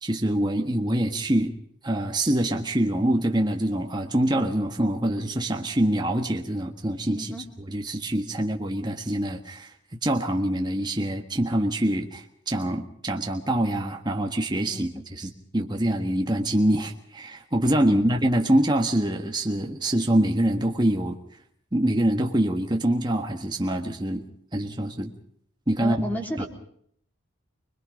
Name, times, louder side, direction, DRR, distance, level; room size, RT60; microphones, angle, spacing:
voice 1, 0.0-1.5 1.8-9.7 10.0-21.2 21.7-24.2 24.5-25.1 25.7-26.1 26.4-26.5, right 1 dB, 20° right, 3 dB, 1.5 m, -25 dB
voice 2, 14.7-15.0 17.9-18.1 25.8-26.5, equal, 10° left, 2 dB, 3.3 m, -33 dB
25.5 x 21.5 x 5.2 m, 0.65 s
head